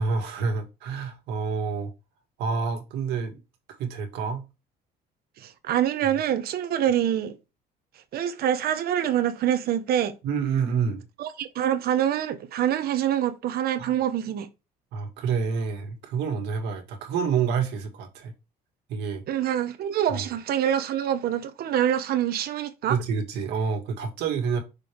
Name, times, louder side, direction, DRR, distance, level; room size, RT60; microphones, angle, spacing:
voice 1, 0.0-1.9 2.4-3.4 3.8-4.4 10.2-11.0 13.8-13.9 14.9-18.3 18.9-19.2 20.1-20.3 22.9-24.6, right 5 dB, 85° right, 1.8 m, -28 dB
voice 2, 5.4-7.4 8.1-10.1 11.2-14.5 19.3-22.9, right 10 dB, 65° right, 0.9 m, -25 dB
6.1 x 3.4 x 4.5 m
cardioid pair, 110°, 17 cm